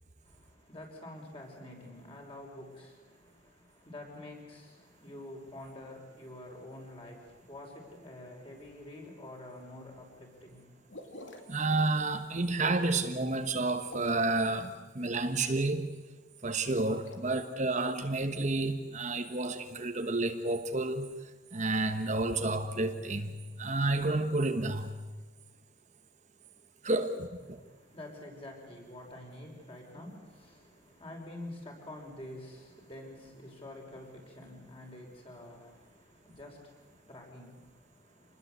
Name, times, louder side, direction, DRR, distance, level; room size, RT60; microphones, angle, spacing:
voice 1, 0.2-10.9 27.5-38.4, left 1 dB, 30° left, 0 dB, 6.0 m, -48 dB
sound 1, 10.9-11.6 13.8-14.4 16.6-17.2, left 1 dB, 80° left, 3.1 m, -48 dB
voice 2, 11.5-15.9 16.4-21.1 21.5-24.9 26.8-27.6, right 2 dB, 40° right, 7 dB, 1.2 m, -30 dB
27.0 x 20.5 x 8.2 m, 1.3 s
head